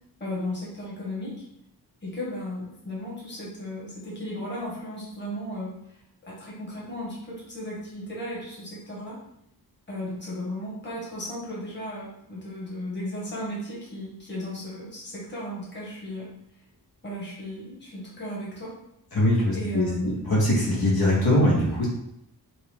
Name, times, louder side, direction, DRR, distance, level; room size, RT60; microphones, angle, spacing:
voice 1, 0.2-1.3 2.0-5.7 6.2-9.2 9.9-16.3 17.0-18.7 19.5-20.2, left 1 dB, 30° left, -6 dB, 1.5 m, -35 dB
voice 2, 19.1-21.9, left 1 dB, 65° left, -5 dB, 1.5 m, -22 dB
5.9 x 2.4 x 3.5 m, 0.77 s
wide cardioid pair, 175°, 39 cm